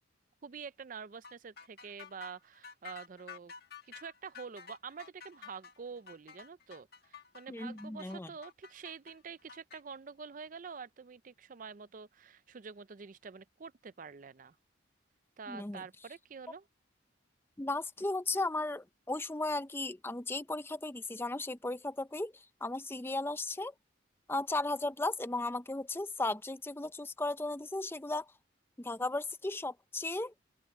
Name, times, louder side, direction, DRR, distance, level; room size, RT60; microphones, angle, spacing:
voice 1, 0.4-3.5 3.8-14.6 15.4-16.7, right 5 dB, 40° right, 0.4 m, -47 dB
sound 1, 1.2-9.8, left 5 dB, 50° left, 1.8 m, -51 dB
voice 2, 7.5-8.3 15.5-15.8 17.6-23.7 24.3-28.3 28.8-30.3, left 2 dB, 10° left, 0.5 m, -35 dB
open air
head